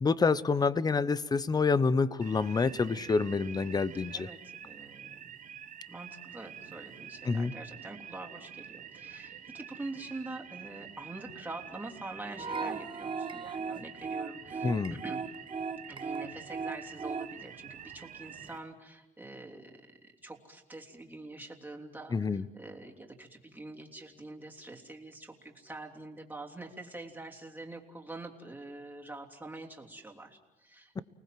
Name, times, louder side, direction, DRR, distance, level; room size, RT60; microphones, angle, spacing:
voice 1, 0.0-4.3 7.3-7.5 14.6-14.9 22.1-22.4, left 4 dB, 25° left, 17 dB, 0.9 m, -27 dB
sound 1, 2.2-18.6, right 8 dB, 50° right, 1.5 m, -47 dB
voice 2, 4.1-5.3 5.9-15.2 15.9-31.0, right 2 dB, 10° right, 1 dB, 3.2 m, -45 dB
sound 2, 12.4-17.3, right 5 dB, 30° right, 1.2 m, -37 dB
29.5 x 19.5 x 7.7 m, 1.0 s
cardioid pair, 110°, 17 cm